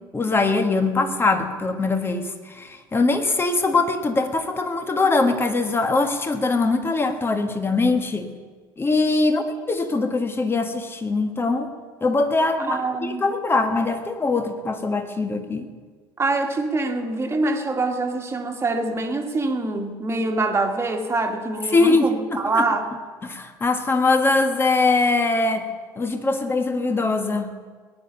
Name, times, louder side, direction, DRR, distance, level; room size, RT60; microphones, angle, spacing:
voice 1, 0.1-8.3 8.8-11.7 12.0-15.7 21.7-22.7 23.2-25.7 26.0-27.5, left 3 dB, 20° left, 7 dB, 1.6 m, -22 dB
voice 2, 12.6-13.3 16.2-22.9, right 2 dB, 20° right, 4 dB, 2.0 m, -25 dB
19.0 x 10.5 x 5.7 m, 1.5 s
figure-of-eight pair, 60°, 12 cm